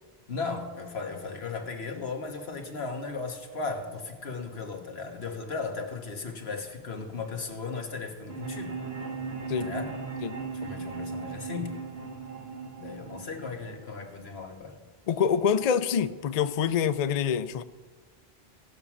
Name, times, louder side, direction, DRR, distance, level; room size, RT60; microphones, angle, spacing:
voice 1, 0.3-8.8 9.6-9.9 10.5-11.7 12.8-14.8, left 4 dB, 90° left, 1.6 m, -36 dB
sound 1, 8.3-14.3, right 4 dB, 90° right, 1.9 m, -37 dB
voice 2, 15.1-17.6, left 7 dB, 50° left, 0.5 m, -26 dB
17.0 x 6.1 x 7.2 m
omnidirectional pair, 1.0 m